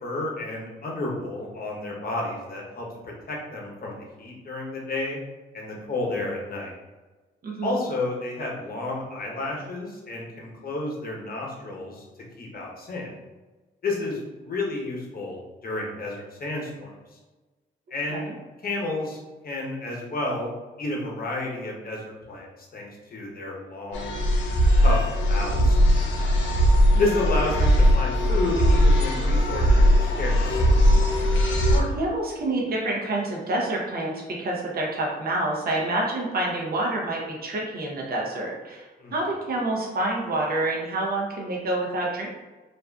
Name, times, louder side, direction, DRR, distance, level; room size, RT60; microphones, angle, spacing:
voice 1, 0.0-5.2 5.5-6.7 7.6-12.0 12.4-13.1 13.8-16.9 17.9-18.3 18.6-19.2 19.4-20.5 20.8-22.5 22.7-24.1 24.8-25.8 27.0-30.6 39.0-39.1, left 2 dB, 50° left, -2 dB, 0.9 m, -31 dB
voice 2, 7.4-7.8 18.1-18.3 26.9-27.0 31.7-42.3, right 2 dB, 55° right, -2 dB, 0.7 m, -28 dB
sound 1, 23.9-31.8, equal, 80° left, 0.5 m, -19 dB
2.5 x 2.3 x 2.2 m, 1.2 s
supercardioid pair, 50°, 19 cm